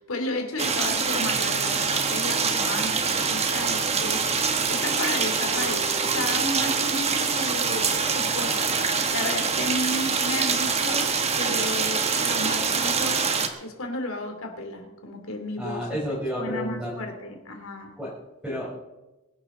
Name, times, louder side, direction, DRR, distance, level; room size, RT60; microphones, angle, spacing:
voice 1, 0.0-11.1 11.4-13.3 13.6-16.0 16.4-17.9, left 1 dB, 80° left, 4 dB, 3.0 m, -33 dB
sound 1, 0.6-13.5, right 5 dB, 30° right, 1.4 m, -25 dB
voice 2, 15.6-17.0 18.0-18.1 18.4-18.8, equal, 5° right, -7 dB, 4.3 m, -30 dB
22.5 x 11.5 x 4.0 m, 1.1 s
head